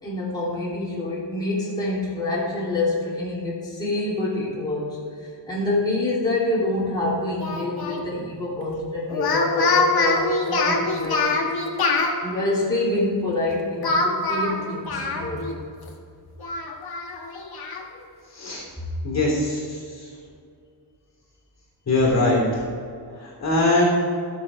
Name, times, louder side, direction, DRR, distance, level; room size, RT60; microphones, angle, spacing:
voice 1, 0.0-11.4 12.2-15.5, left 2 dB, 10° left, -8 dB, 3.1 m, -26 dB
Speech, 7.4-8.0 9.1-12.1 13.8-15.6 15.9-16.0 16.4-17.8, left 3 dB, 55° left, 1.6 m, -24 dB
voice 2, 18.3-18.6 19.0-19.8 21.9-22.6 23.2-23.8, left 2 dB, 35° left, -2 dB, 3.2 m, -21 dB
13.5 x 6.8 x 4.9 m, 2.3 s
cardioid pair, 135°, 44 cm